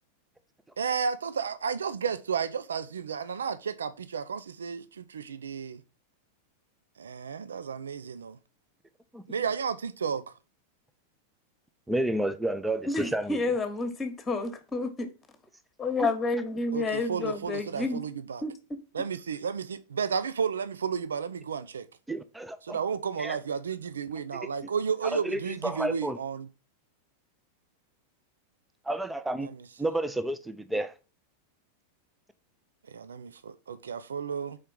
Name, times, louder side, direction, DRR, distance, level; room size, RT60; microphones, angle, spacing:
voice 1, 0.8-5.8 7.0-8.4 9.3-10.2 16.7-18.4 18.9-21.9 22.6-26.4 29.4-29.6 32.9-34.6, right 6 dB, 70° right, 0.4 m, -32 dB
voice 2, 11.9-13.4 16.0-16.1 22.1-22.8 23.2-23.4 25.1-26.2 28.8-29.5 29.8-30.9, right 1 dB, 5° right, 0.6 m, -30 dB
voice 3, 12.8-15.1 15.8-18.0 18.4-18.5, left 3 dB, 15° left, 1.3 m, -30 dB
4.9 x 4.4 x 5.3 m
figure-of-eight pair, 90°, 0 cm